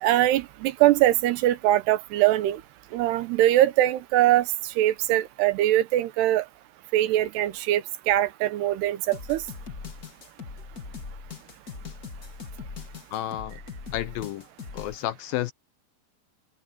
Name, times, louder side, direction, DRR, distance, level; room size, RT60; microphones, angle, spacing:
voice 1, 0.0-2.6 2.9-4.5 4.8-6.4 6.9-9.4, right 14 dB, 85° right, 3.2 m, -22 dB
sound 1, 9.1-14.9, left 5 dB, 40° left, 1.4 m, -40 dB
voice 2, 13.1-13.6 13.9-14.5 14.7-15.5, left 14 dB, 75° left, 2.3 m, -31 dB
omnidirectional pair, 4.6 m